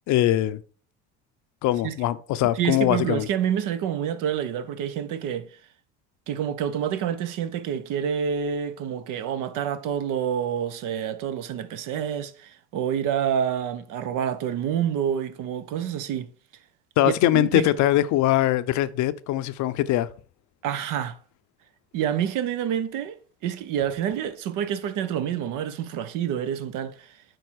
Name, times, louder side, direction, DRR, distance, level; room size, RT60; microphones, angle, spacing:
voice 1, 0.1-0.6 1.6-3.3 17.0-20.1, left 14 dB, 60° left, 0.6 m, -22 dB
voice 2, 2.5-5.6 6.3-16.3 17.0-17.6 20.6-21.2 21.9-27.2, right 9 dB, 65° right, 0.9 m, -28 dB
7.9 x 4.5 x 4.6 m
supercardioid pair, 90°, 34 cm